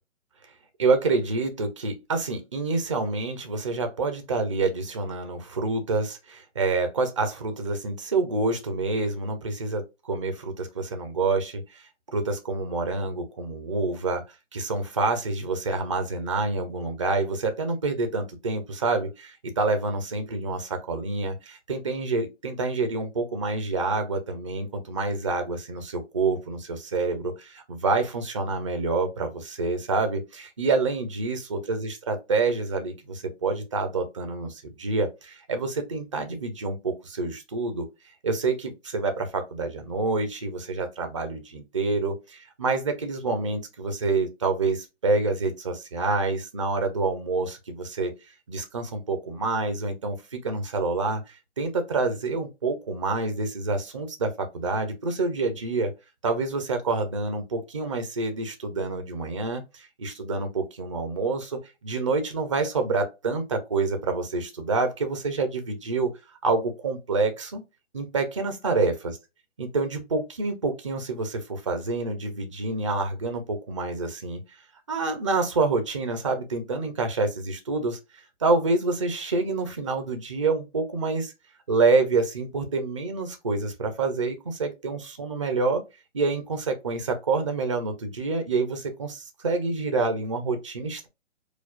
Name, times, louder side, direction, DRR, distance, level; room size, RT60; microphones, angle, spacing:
voice 1, 0.8-11.8 12.1-14.2 14.5-37.9 38.2-48.1 48.5-55.9 56.2-66.1 66.4-67.6 67.9-69.2 69.6-74.4 74.9-78.0 78.4-81.3 81.7-85.8 86.1-91.1, right 3 dB, 25° right, 0.5 m, -27 dB
4.5 x 2.3 x 2.3 m
hypercardioid pair, 160°, 37 cm